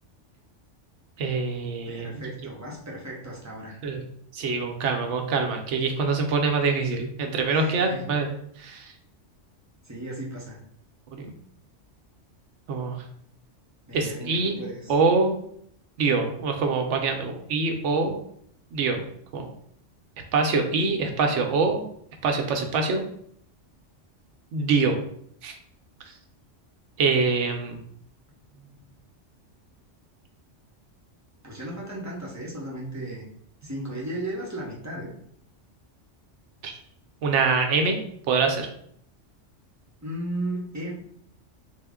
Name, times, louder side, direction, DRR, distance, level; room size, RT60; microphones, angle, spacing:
voice 1, 1.2-2.2 3.8-4.0 4.3-8.3 8.6-8.9 11.1-11.3 12.7-13.0 13.9-14.6 14.9-15.3 16.0-18.2 18.7-19.0 19.3-19.5 20.3-21.8 22.2-23.0 24.5-25.0 25.4-25.5 27.0-27.8 36.6-36.7 37.2-38.0 38.3-38.7, right 4 dB, 75° right, 4 dB, 0.9 m, -24 dB
voice 2, 1.9-3.8 7.5-8.1 9.8-10.6 13.9-14.9 28.5-28.9 31.4-33.2 33.6-35.2 40.0-40.9, right 1 dB, 20° right, -3 dB, 0.5 m, -35 dB
3.6 x 2.1 x 3.5 m, 0.66 s
omnidirectional pair, 1.3 m